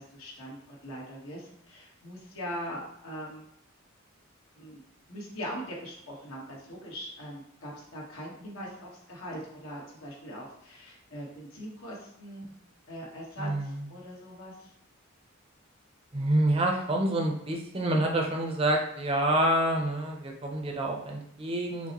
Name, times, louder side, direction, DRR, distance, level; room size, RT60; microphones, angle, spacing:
voice 1, 0.0-3.5 4.5-4.8 5.1-12.5 12.9-14.7, equal, 85° left, -3 dB, 1.4 m, -41 dB
voice 2, 13.4-13.8 16.1-21.9, right 1 dB, 25° right, 1 dB, 0.6 m, -27 dB
5.9 x 2.2 x 2.9 m, 0.77 s
head